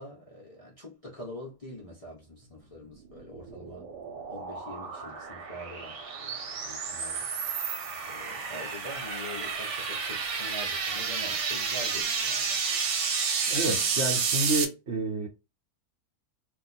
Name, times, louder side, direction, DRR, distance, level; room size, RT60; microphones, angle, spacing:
voice 1, 0.0-3.9 4.3-7.3 7.6-7.8 8.1-12.6, left 1 dB, 40° left, 0.5 m, -44 dB
sound 1, 3.0-14.7, right 5 dB, 85° right, 1.3 m, -31 dB
voice 2, 13.5-15.3, right 2 dB, 50° right, 0.9 m, -29 dB
2.6 x 2.4 x 4.1 m
omnidirectional pair, 1.8 m